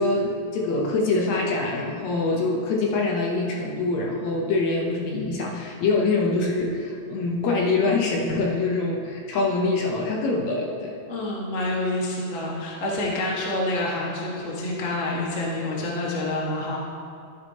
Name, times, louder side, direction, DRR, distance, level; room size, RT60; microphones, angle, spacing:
voice 1, 0.0-11.0, left 3 dB, 70° left, -1 dB, 2.0 m, -24 dB
voice 2, 11.1-16.8, left 1 dB, 35° left, -4 dB, 1.2 m, -27 dB
12.5 x 9.0 x 2.8 m, 2.3 s
omnidirectional pair, 3.6 m